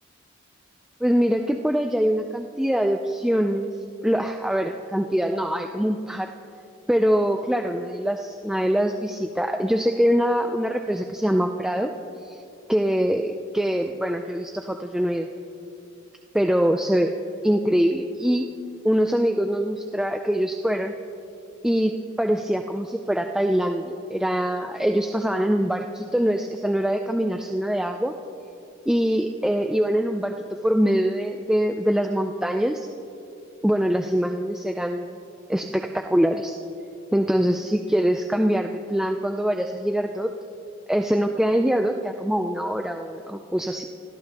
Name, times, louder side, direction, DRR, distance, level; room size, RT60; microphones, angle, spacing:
voice 1, 1.0-3.7 4.0-6.3 6.9-11.9 12.2-12.4 12.7-15.3 16.3-17.1 17.4-18.5 18.8-20.9 21.6-28.1 28.9-32.9 33.6-35.2 35.5-36.6 37.1-40.3 40.9-43.8, equal, 5° right, 4 dB, 0.4 m, -23 dB
27.0 x 14.0 x 2.9 m, 2.7 s
head